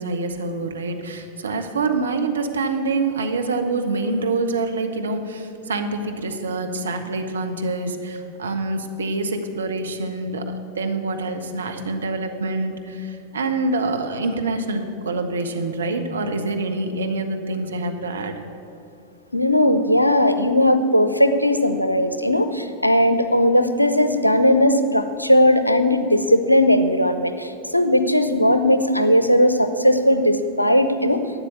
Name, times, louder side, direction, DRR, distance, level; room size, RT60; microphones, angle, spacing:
voice 1, 0.0-18.4, right 3 dB, 70° right, 5 dB, 1.1 m, -26 dB
voice 2, 19.3-31.2, left 1 dB, 90° left, 10 dB, 0.7 m, -18 dB
12.0 x 8.8 x 8.4 m, 2.6 s
figure-of-eight pair, 90°, 0 cm